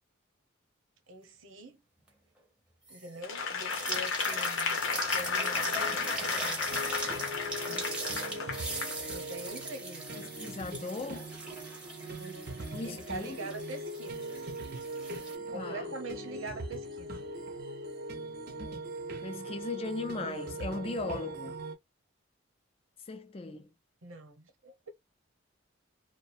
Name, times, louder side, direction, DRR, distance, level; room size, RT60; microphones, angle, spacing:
voice 1, 1.1-1.8 2.9-4.8 5.1-6.6 7.7-8.1 9.1-10.1 12.2-12.4 12.8-14.4 15.5-17.3 24.0-24.9, right 2 dB, 85° right, 0.9 m, -44 dB
sound 1, 2.9-3.2 3.5-15.4, right 2 dB, 5° right, 0.7 m, -40 dB
Applause / Crowd, 3.2-9.0 9.5-9.6, left 5 dB, 80° left, 0.7 m, -33 dB
sound 2, 6.7-21.8, right 1 dB, 50° right, 0.5 m, -40 dB
voice 2, 10.2-11.3 12.7-13.5 15.5-16.0 19.2-21.6 23.0-23.7, left 3 dB, 30° left, 0.4 m, -38 dB
2.3 x 2.1 x 2.6 m
head